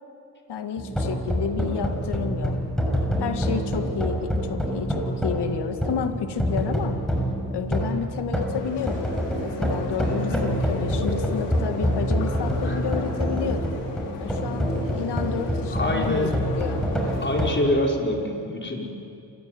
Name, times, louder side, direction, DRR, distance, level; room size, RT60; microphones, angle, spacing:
voice 1, 0.5-2.6 3.2-7.0 7.5-9.1 9.4-13.7 14.2-16.9, left 7 dB, 70° left, 8 dB, 2.0 m, -31 dB
sound 1, 0.8-17.6, equal, ahead, 6.8 m, -27 dB
sound 2, 8.5-17.6, left 3 dB, 85° left, 3.5 m, -36 dB
voice 2, 15.7-16.3 17.2-18.9, left 1 dB, 25° left, 0 dB, 5.1 m, -26 dB
28.0 x 13.0 x 9.5 m, 2.5 s
hypercardioid pair, 45°, 43 cm